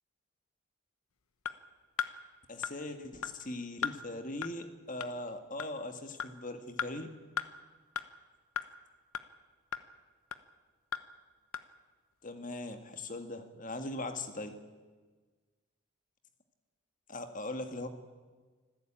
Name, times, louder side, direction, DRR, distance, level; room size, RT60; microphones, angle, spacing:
sound 1, 1.4-1.5 2.0-2.1 2.6-2.7 3.2-3.3 3.8-4.0 4.4-4.5 5.0-5.1 5.6-5.7 6.2-6.3 6.8-6.9 7.4-7.5 8.0-8.1 8.6-8.7 9.1-9.2 9.7-9.8 10.3-10.4 10.9-11.0 11.5-11.6, left 7 dB, 85° left, 1.1 m, -35 dB
voice 1, 2.5-7.1 12.2-14.6 17.1-17.9, left 2 dB, 40° left, 8 dB, 1.8 m, -40 dB
26.0 x 15.0 x 8.9 m, 1.4 s
head